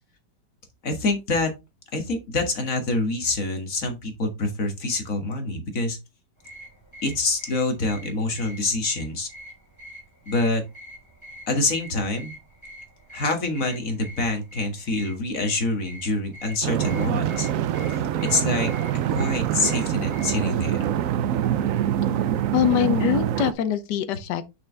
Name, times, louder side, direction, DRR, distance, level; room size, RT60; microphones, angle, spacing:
voice 1, 0.8-1.5 1.9-6.0 7.0-9.3 10.3-10.6 11.5-12.3 13.1-17.5 17.9-18.7 19.1-20.9, left 2 dB, 50° left, 2.1 m, -26 dB
sound 1, 6.4-20.5, equal, 15° left, 2.8 m, -45 dB
sound 2, 16.6-23.5, right 10 dB, 70° right, 0.8 m, -25 dB
voice 2, 22.5-24.5, left 10 dB, 75° left, 1.4 m, -23 dB
6.7 x 6.0 x 3.4 m
omnidirectional pair, 1.9 m